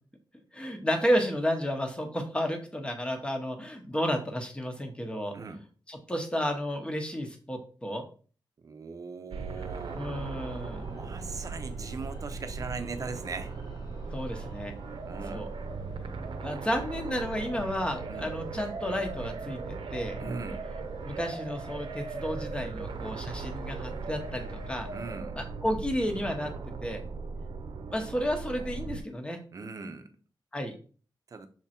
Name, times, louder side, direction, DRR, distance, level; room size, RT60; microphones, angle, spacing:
voice 1, 0.5-5.3 5.9-8.0 9.9-10.9 14.1-14.7 15.3-15.5 16.4-19.6 19.9-20.2 21.0-24.9 25.4-26.5 26.8-27.0 27.9-29.4 30.5-30.7, equal, 10° left, 4 dB, 1.0 m, -32 dB
voice 2, 8.6-10.1 10.8-13.5 15.1-15.5 18.1-18.3 20.2-20.7 24.9-25.4 29.5-30.1 31.3-31.5, right 4 dB, 45° right, 9 dB, 0.7 m, -39 dB
sound 1, 9.3-29.0, right 4 dB, 80° right, 0.7 m, -38 dB
sound 2, 9.5-25.2, left 2 dB, 60° left, 1.1 m, -51 dB
6.3 x 3.6 x 4.3 m, 0.40 s
wide cardioid pair, 175°, 8 cm